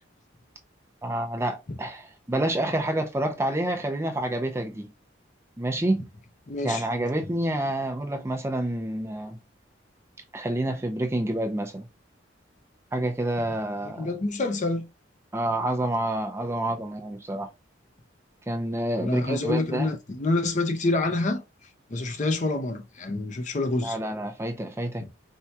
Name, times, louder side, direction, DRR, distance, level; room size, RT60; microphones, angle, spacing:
voice 1, 1.0-4.9 5.6-6.0 6.6-9.4 10.3-11.9 12.9-14.1 15.3-17.5 18.5-19.9 23.8-25.1, right 1 dB, 15° right, 0.4 m, -28 dB
voice 2, 6.5-6.8 13.9-14.9 19.0-21.4 21.9-24.0 25.0-25.1, left 2 dB, 40° left, 0.6 m, -27 dB
4.5 x 2.2 x 2.7 m
head